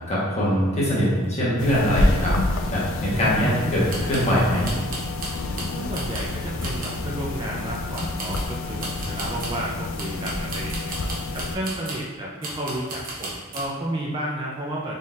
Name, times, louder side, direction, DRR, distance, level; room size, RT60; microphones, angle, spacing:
voice 1, 0.1-2.3 2.7-4.7, equal, 30° left, -7 dB, 1.1 m, -22 dB
sound 1, 0.9-1.0 1.2-1.3 1.7-1.8 2.3-2.4 3.9-4.3 4.6-6.3 6.6-7.1 7.9-9.6 10.0-12.1 12.4-13.7, right 2 dB, 40° right, 0.9 m, -35 dB
sound 2, 1.6-11.6, left 2 dB, 70° left, 0.4 m, -28 dB
voice 2, 3.1-3.7 5.7-10.9 11.3-15.0, right 1 dB, 25° right, -4 dB, 0.4 m, -32 dB
4.1 x 3.8 x 2.4 m, 1.4 s
head